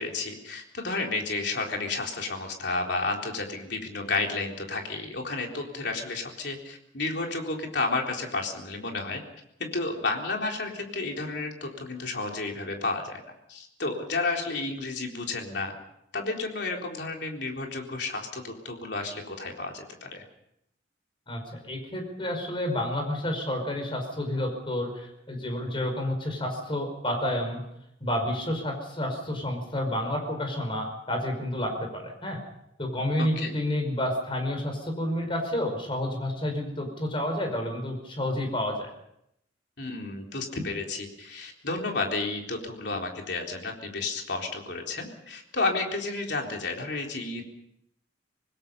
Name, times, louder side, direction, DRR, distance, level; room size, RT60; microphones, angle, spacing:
voice 1, 0.0-9.2 9.6-13.2 13.5-15.7 16.1-20.2 33.2-33.5 39.8-47.4, left 3 dB, 60° left, 1 dB, 3.9 m, -31 dB
voice 2, 21.3-27.6 28.0-32.4 32.8-38.9, left 1 dB, 25° left, 4 dB, 5.2 m, -30 dB
26.0 x 20.0 x 5.6 m, 0.78 s
head